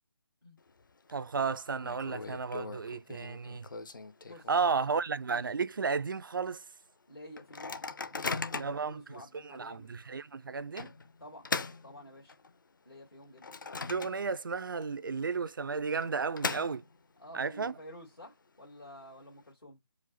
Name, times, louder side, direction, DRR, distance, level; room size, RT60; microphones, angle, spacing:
Microwave oven, 0.6-1.1 1.4-1.5 1.8-4.9 5.3-5.4 5.7-6.0 6.5-6.6 7.4-8.9 9.5-9.6 10.8-12.6 13.0-14.5 14.8-14.9 15.8-17.2, left 4 dB, 60° left, 0.6 m, -39 dB
voice 1, 1.1-3.7 4.5-6.6 8.5-10.9 13.9-16.8 17.3-17.7, right 5 dB, 65° right, 0.4 m, -33 dB
voice 2, 4.2-5.4 7.1-7.7 8.1-9.9 11.2-11.5 11.8-12.3 12.9-13.5 17.2-19.8, left 1 dB, 90° left, 1.9 m, -50 dB
4.9 x 2.0 x 4.1 m
figure-of-eight pair, 150°, 12 cm